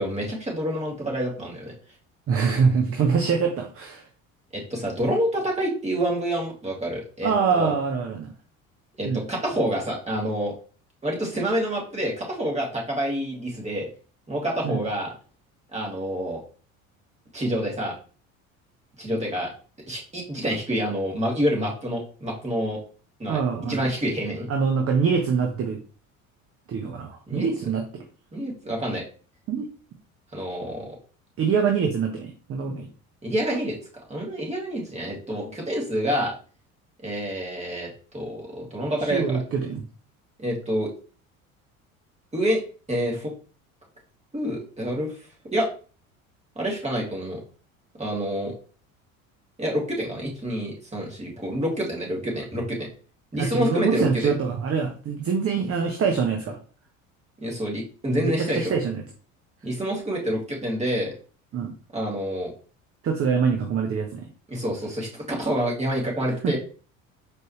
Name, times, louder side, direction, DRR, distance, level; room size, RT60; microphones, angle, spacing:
voice 1, 0.0-1.7 4.5-7.7 9.0-10.5 11.0-13.9 14.3-15.1 15.7-16.4 17.3-17.9 19.0-19.5 19.9-22.8 23.2-24.5 27.3-27.5 28.3-29.0 30.3-30.9 33.2-33.8 34.1-36.3 37.0-39.4 40.4-40.9 42.3-42.6 42.9-43.3 44.3-45.1 45.5-45.7 46.6-47.4 48.0-48.5 49.6-52.9 53.3-54.3 57.4-58.7 59.6-61.1 61.9-62.5 64.5-66.6, equal, 15° right, -2 dB, 2.1 m, -27 dB
voice 2, 2.3-4.1 7.2-8.3 9.0-9.2 14.6-14.8 23.3-23.9 24.5-25.8 26.7-28.0 29.5-29.7 31.4-32.9 39.0-39.8 53.4-56.6 58.1-59.0 61.5-61.7 63.0-64.3 66.4-66.6, right 6 dB, 35° right, 3 dB, 0.8 m, -24 dB
4.5 x 3.1 x 3.0 m, 0.38 s
hypercardioid pair, 60°, 41 cm